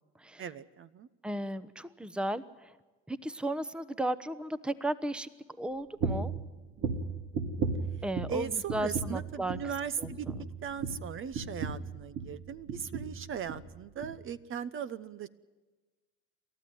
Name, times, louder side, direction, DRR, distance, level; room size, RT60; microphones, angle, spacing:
voice 1, 0.4-1.1 8.3-10.3 10.6-15.3, right 7 dB, 40° right, 15 dB, 0.9 m, -38 dB
voice 2, 1.2-2.7 3.1-5.3 5.6-6.3 8.0-9.6 10.0-10.1, right 1 dB, 5° right, 15 dB, 1.0 m, -35 dB
sound 1, 6.0-6.4 6.8-8.4 8.7-9.2 9.5-9.7 10.0-12.4 12.7-13.2 13.5-13.7 14.0-14.1, right 4 dB, 60° right, 3.1 m, -34 dB
28.0 x 13.5 x 9.5 m, 1.2 s
supercardioid pair, 85°, 32 cm